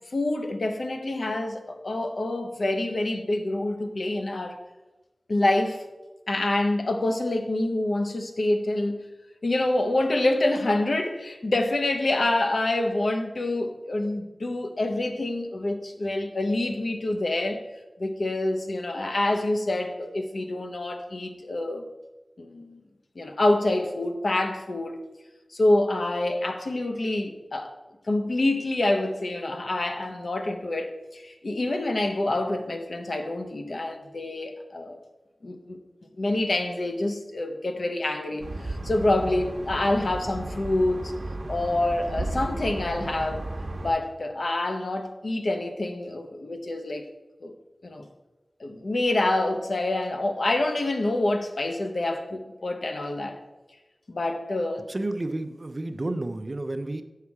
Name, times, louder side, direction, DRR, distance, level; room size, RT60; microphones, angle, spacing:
voice 1, 0.1-4.6 5.3-5.8 6.3-9.0 9.4-17.6 18.0-21.8 22.4-22.8 23.2-25.0 25.5-27.7 28.1-35.0 35.4-35.8 36.2-41.1 41.5-43.5 43.8-47.1 47.4-47.5 47.8-48.1 48.6-53.4 54.1-54.8, left 2 dB, 80° left, 6 dB, 0.8 m, -27 dB
sound 1, 38.4-43.9, right 2 dB, 70° right, 0.9 m, -34 dB
voice 2, 54.9-57.0, right 2 dB, 50° right, 9 dB, 0.5 m, -31 dB
7.4 x 5.6 x 4.7 m, 1.1 s
wide cardioid pair, 55°, 0 cm